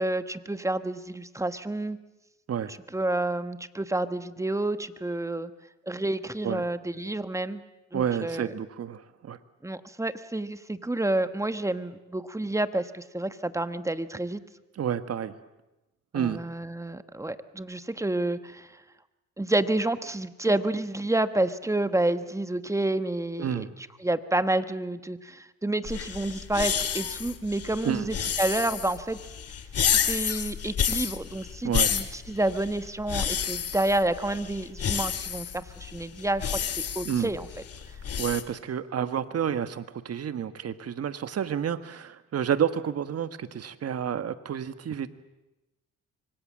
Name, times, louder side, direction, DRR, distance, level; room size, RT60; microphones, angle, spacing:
voice 1, 0.0-2.0 2.9-5.5 5.9-7.6 7.9-8.5 9.6-14.4 16.1-18.8 19.4-23.7 24.0-29.2 29.9-36.6 36.9-37.5, right 2 dB, 10° right, 11 dB, 1.3 m, -29 dB
voice 2, 7.9-9.4 14.7-15.4 16.1-16.4 23.4-23.7 27.8-28.1 31.6-32.0 37.0-37.3 38.2-45.1, right 8 dB, 55° right, 11 dB, 1.6 m, -30 dB
sound 1, 25.8-38.4, left 8 dB, 55° left, 2.1 m, -30 dB
25.5 x 24.0 x 7.5 m, 1.0 s
cardioid pair, 90°, 30 cm